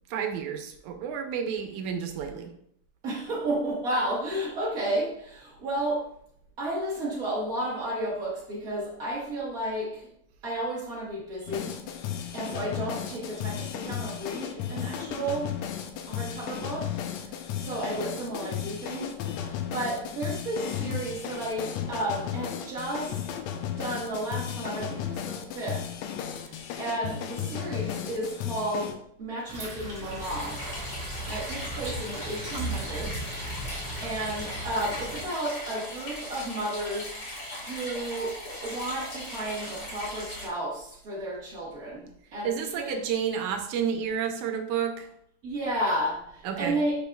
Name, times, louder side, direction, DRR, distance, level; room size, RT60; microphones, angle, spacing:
voice 1, 0.1-2.5 42.4-45.1 46.4-46.8, right 7 dB, 75° right, 5 dB, 2.1 m, -30 dB
voice 2, 3.0-6.1 6.6-10.1 10.4-11.8 12.3-15.5 16.1-16.9 17.6-23.2 23.8-25.9 26.3-28.9 29.2-30.7 31.3-33.1 34.0-37.1 37.6-43.0 45.4-47.0, right 1 dB, 55° right, -6 dB, 0.9 m, -32 dB
sound 1, 11.5-28.9, left 9 dB, 75° left, 1.7 m, -34 dB
sound 2, 29.5-35.2, right 1 dB, 20° right, 1.7 m, -37 dB
sound 3, 30.2-40.5, left 1 dB, 45° left, 3.4 m, -39 dB
10.0 x 5.1 x 2.3 m, 0.71 s
omnidirectional pair, 3.6 m